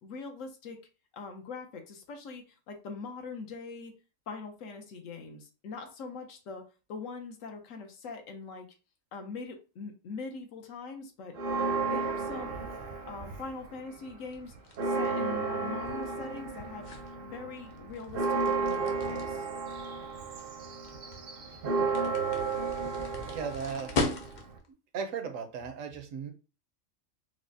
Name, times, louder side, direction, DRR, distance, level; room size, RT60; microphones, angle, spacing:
voice 1, 0.0-0.9 1.1-4.0 4.3-8.7 9.1-11.4 11.9-12.7 13.1-14.5 14.8-16.9 17.3-19.5, left 4 dB, 75° left, 5 dB, 1.1 m, -42 dB
Church bell, 11.3-13.7 14.1-14.2 14.5-24.6, right 4 dB, 55° right, 0.7 m, -33 dB
sound 1, 14.3-24.7, left 3 dB, 50° left, 0.6 m, -39 dB
voice 2, 23.2-24.0 24.4-24.5 24.9-26.3, right 6 dB, 75° right, 6 dB, 1.0 m, -37 dB
4.7 x 2.0 x 2.6 m, 0.32 s
omnidirectional pair, 1.4 m